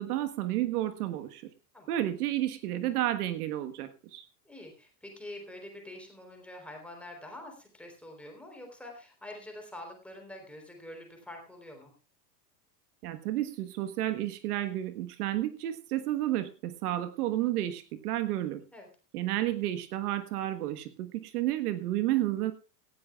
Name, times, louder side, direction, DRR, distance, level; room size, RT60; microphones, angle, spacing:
voice 1, 0.0-1.5 1.9-4.3 13.0-18.6 19.1-22.5, right 14 dB, 65° right, 10 dB, 1.5 m, -31 dB
voice 2, 1.7-2.1 4.4-11.9 18.7-18.9, left 1 dB, 5° left, 2 dB, 3.8 m, -46 dB
18.0 x 15.5 x 2.4 m, 0.34 s
supercardioid pair, 165°, 48 cm